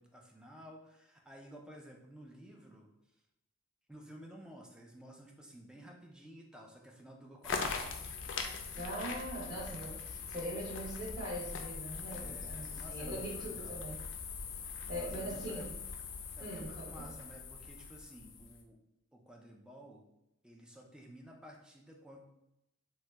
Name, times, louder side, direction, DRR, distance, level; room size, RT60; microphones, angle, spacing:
voice 1, 0.0-2.9 3.9-8.1 12.1-13.8 14.9-15.8 16.3-18.8 19.1-20.0 20.4-22.2, right 1 dB, 5° right, 0 dB, 0.4 m, -53 dB
sound 1, 7.4-18.6, left 5 dB, 65° left, 0.4 m, -42 dB
voice 2, 8.7-13.9 14.9-15.7 16.4-17.1, right 1 dB, 20° right, -9 dB, 1.1 m, -42 dB
2.9 x 2.1 x 3.3 m, 0.87 s
head